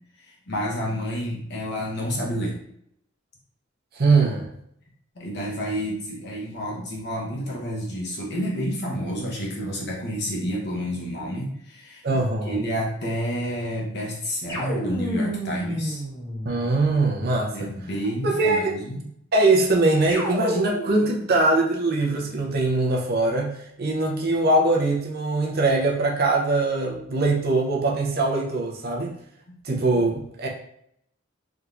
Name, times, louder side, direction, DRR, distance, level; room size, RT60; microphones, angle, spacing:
voice 1, 0.2-2.6 5.2-16.0 17.5-19.1, equal, 55° left, -2 dB, 0.9 m, -29 dB
voice 2, 4.0-4.5 12.0-12.6 16.4-17.7 18.2-18.7 19.3-29.1 29.6-30.5, right 2 dB, 50° right, -1 dB, 0.6 m, -22 dB
sound 1, 14.5-17.0 20.1-21.1, equal, 15° left, 1.5 m, -30 dB
3.5 x 2.9 x 2.4 m, 0.71 s
head